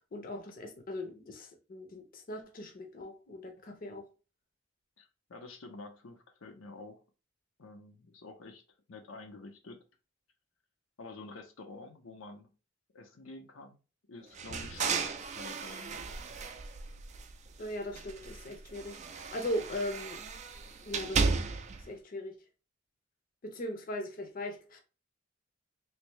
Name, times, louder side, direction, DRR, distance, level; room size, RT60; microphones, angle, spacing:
voice 1, 0.1-4.1 17.6-20.2 20.9-21.3 21.8-22.3 23.4-24.8, left 1 dB, 45° left, 0.7 m, -39 dB
voice 2, 5.0-7.0 7.6-8.6 8.9-9.8 11.0-12.5 12.9-13.8 14.1-16.1, left 3 dB, 85° left, 0.7 m, -48 dB
sound 1, 14.3-17.5 17.9-21.8, right 4 dB, 35° right, 0.4 m, -35 dB
3.3 x 2.6 x 3.1 m
head